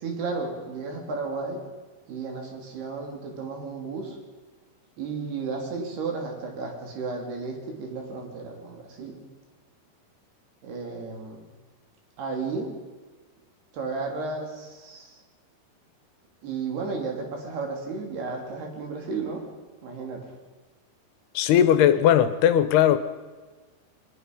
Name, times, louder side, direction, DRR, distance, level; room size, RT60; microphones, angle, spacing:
voice 1, 0.0-1.6 2.1-4.2 5.0-9.2 10.6-11.4 12.2-12.7 13.7-15.2 16.4-19.5 19.8-20.2, right 4 dB, 75° right, 1 dB, 5.1 m, -33 dB
voice 2, 21.3-23.0, left 10 dB, 80° left, 12 dB, 2.9 m, -18 dB
22.5 x 21.0 x 5.5 m, 1.3 s
omnidirectional pair, 4.7 m